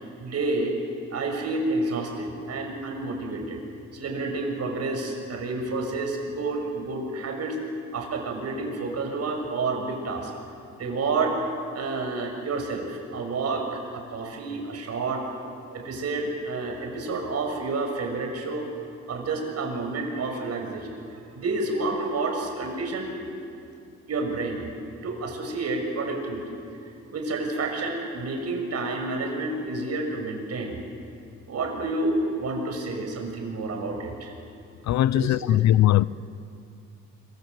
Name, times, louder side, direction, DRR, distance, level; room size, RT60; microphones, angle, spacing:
voice 1, 0.2-0.7 1.1-3.6 3.9-7.6 7.9-10.3 10.8-11.4 11.7-15.2 15.7-18.7 19.1-23.3 24.1-24.7 25.0-26.6 27.1-30.8 31.5-34.3 35.1-35.6, right 3 dB, 55° right, 6.4 m, -29 dB
voice 2, 34.8-36.0, left 13 dB, 65° left, 0.6 m, -20 dB
26.0 x 24.0 x 8.1 m
cardioid pair, 90°, 30 cm